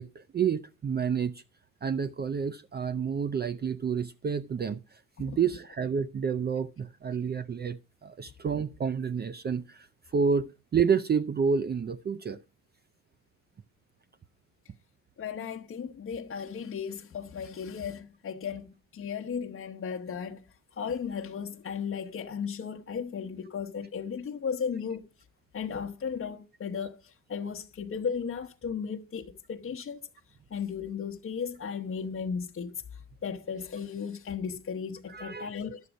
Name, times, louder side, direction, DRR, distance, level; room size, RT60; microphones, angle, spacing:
voice 1, 0.0-1.4 1.8-9.9 10.1-12.4 35.1-35.5, right 6 dB, 35° right, 0.5 m, -29 dB
voice 2, 15.2-20.4 20.7-25.1 25.5-30.1 30.5-35.8, left 6 dB, 45° left, 1.0 m, -35 dB
11.5 x 8.0 x 5.2 m
cardioid pair, 90°, 30 cm